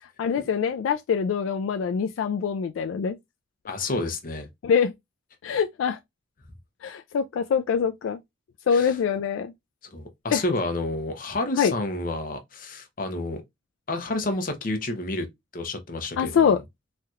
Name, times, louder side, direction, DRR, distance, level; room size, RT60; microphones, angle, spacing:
voice 1, 0.2-3.2 4.6-4.9 5.4-6.0 6.8-8.2 8.7-9.5 10.3-10.4 11.6-11.7 16.2-16.6, left 6 dB, 80° left, 0.3 m, -24 dB
voice 2, 3.7-4.5 8.7-9.0 9.9-13.4 13.9-15.3 15.5-16.6, left 2 dB, 45° left, 0.7 m, -30 dB
3.1 x 2.8 x 2.4 m
head